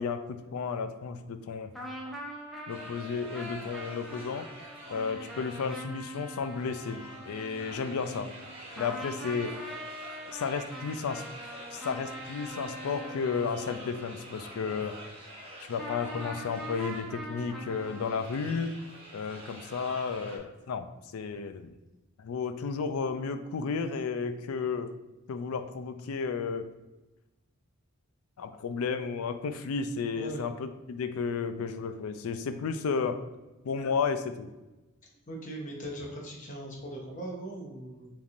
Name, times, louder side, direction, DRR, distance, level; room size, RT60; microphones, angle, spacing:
voice 1, 0.0-1.7 2.7-4.5 4.9-8.3 8.8-9.6 10.3-11.2 11.7-15.0 15.6-18.7 19.1-21.7 22.2-24.9 25.3-26.7 28.4-33.2 33.6-34.5, left 5 dB, 85° left, 9 dB, 0.4 m, -33 dB
sound 1, 1.7-8.5 8.8-14.7 15.8-18.2, equal, ahead, 0.5 m, -43 dB
sound 2, 2.7-20.4, equal, 25° right, 0.8 m, -47 dB
voice 2, 35.3-38.1, right 1 dB, 35° left, -1 dB, 0.9 m, -39 dB
5.0 x 3.4 x 2.5 m, 1.1 s
head